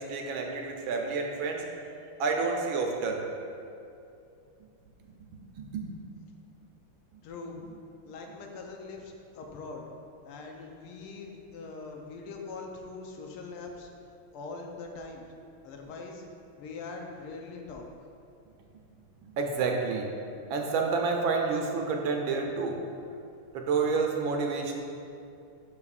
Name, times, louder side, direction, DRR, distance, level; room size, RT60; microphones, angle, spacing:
voice 1, 0.0-3.2 5.0-5.9 7.1-7.2 19.2-20.1 20.4-22.8 23.5-24.8, right 4 dB, 70° right, 1 dB, 1.4 m, -30 dB
voice 2, 7.2-7.6 8.0-9.9 10.2-13.9 14.3-15.2 15.6-16.2 16.6-17.9, left 3 dB, 80° left, 2 dB, 1.6 m, -42 dB
12.0 x 4.8 x 2.4 m, 2.6 s
omnidirectional pair, 2.4 m